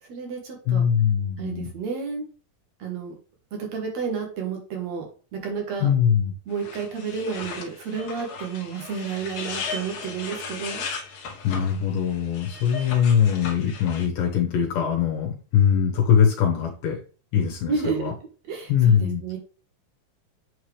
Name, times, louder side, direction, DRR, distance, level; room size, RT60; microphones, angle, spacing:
voice 1, 0.0-0.8 1.4-2.3 2.8-3.1 3.6-5.1 5.3-5.9 6.5-10.9 17.7-18.1 18.5-19.4, right 5 dB, 55° right, 2 dB, 2.4 m, -31 dB
voice 2, 0.7-1.7 5.8-6.3 11.4-17.0 17.3-18.1 18.7-19.2, left 8 dB, 75° left, 1 dB, 2.6 m, -22 dB
sound 1, 6.5-14.0, left 5 dB, 55° left, 2.1 m, -36 dB
8.2 x 4.7 x 3.3 m, 0.37 s
omnidirectional pair, 4.1 m